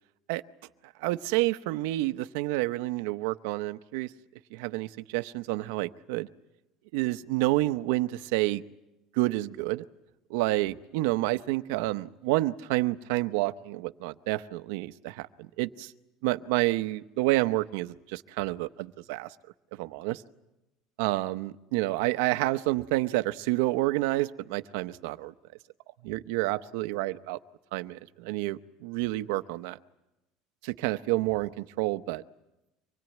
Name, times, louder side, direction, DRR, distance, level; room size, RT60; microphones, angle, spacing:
voice 1, 1.0-4.1 4.5-6.3 6.9-8.6 9.1-9.8 10.3-15.9 16.2-19.3 19.7-20.2 21.0-25.3 26.0-27.4 27.7-29.8 30.6-32.2, right 18 dB, 80° right, 12 dB, 0.8 m, -29 dB
25.0 x 20.5 x 9.2 m, 0.96 s
cardioid pair, 175°, 0 cm